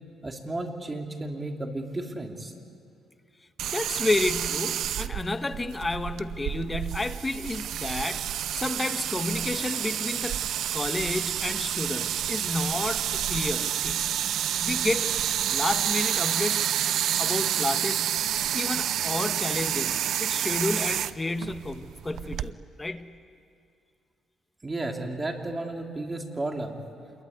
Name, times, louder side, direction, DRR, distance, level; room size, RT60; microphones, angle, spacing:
voice 1, 0.2-2.5 24.6-26.8, right 2 dB, 25° right, 3 dB, 3.1 m, -33 dB
sound 1, 3.6-22.5, right 11 dB, 75° right, 0.6 m, -29 dB
voice 2, 3.7-10.4 10.7-14.1 14.6-15.1 15.5-16.7 17.2-18.1 18.5-23.1, left 2 dB, 20° left, 9 dB, 1.4 m, -31 dB
27.5 x 22.0 x 9.6 m, 2.5 s
cardioid pair, 90°, 0 cm